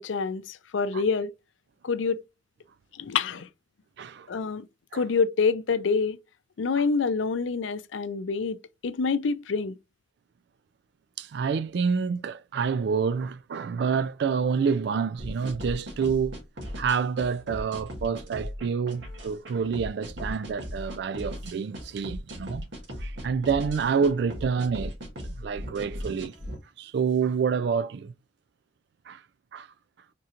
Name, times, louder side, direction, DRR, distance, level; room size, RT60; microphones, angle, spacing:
voice 1, 0.0-1.3 1.8-2.2 2.9-3.5 4.3-4.7 4.9-6.2 6.6-9.8, left 5 dB, 90° left, 0.5 m, -27 dB
voice 2, 4.0-4.3 4.9-5.1 6.8-6.9 11.2-16.4 16.8-22.7 23.0-25.0 25.2-26.3 26.8-28.1 29.1-29.2 29.5-29.7, right 6 dB, 60° right, 0.3 m, -28 dB
sound 1, 15.2-26.6, equal, 80° right, 1.6 m, -38 dB
4.3 x 3.8 x 2.5 m
head